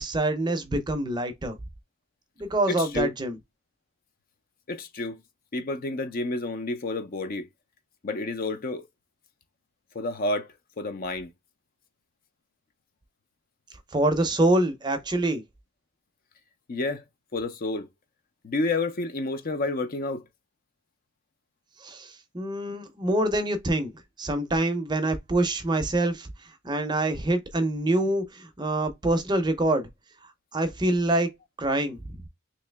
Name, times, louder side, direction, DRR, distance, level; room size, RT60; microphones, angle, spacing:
voice 1, 0.0-1.6 2.4-3.4 13.9-15.4 21.8-23.9 24.2-26.3 26.6-29.9 30.5-31.3 31.6-32.2, right 1 dB, 20° right, 0.6 m, -25 dB
voice 2, 2.7-3.1 4.7-5.2 5.5-7.5 8.0-8.9 9.9-11.3 16.7-17.0 17.3-17.9 18.4-20.2, left 2 dB, 40° left, 0.5 m, -30 dB
3.1 x 2.8 x 3.3 m
head